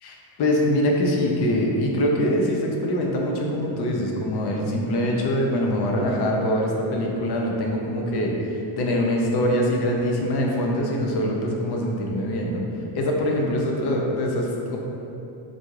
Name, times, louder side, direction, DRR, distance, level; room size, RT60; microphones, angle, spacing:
voice 1, 0.0-12.6 12.9-14.8, equal, 55° left, -1 dB, 0.6 m, -23 dB
3.9 x 2.4 x 3.1 m, 2.9 s
cardioid pair, 110°, 49 cm